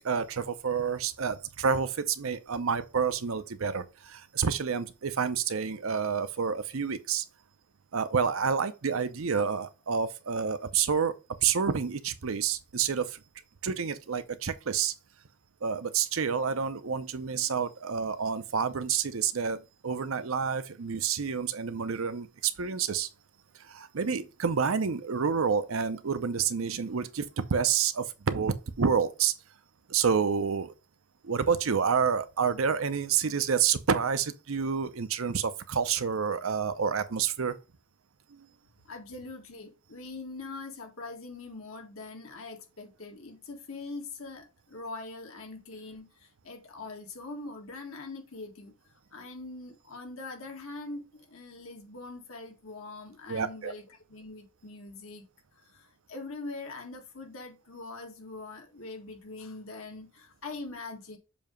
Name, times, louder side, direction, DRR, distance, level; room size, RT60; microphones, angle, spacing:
voice 1, 0.0-7.2 7.9-13.2 13.6-14.9 15.6-23.1 23.6-29.3 29.9-30.7 31.2-37.6 38.3-38.5 53.3-53.7, right 6 dB, 70° right, 0.7 m, -29 dB
voice 2, 38.8-48.7 49.1-55.3 55.6-61.2, left 3 dB, 75° left, 1.7 m, -43 dB
7.1 x 2.9 x 5.1 m
head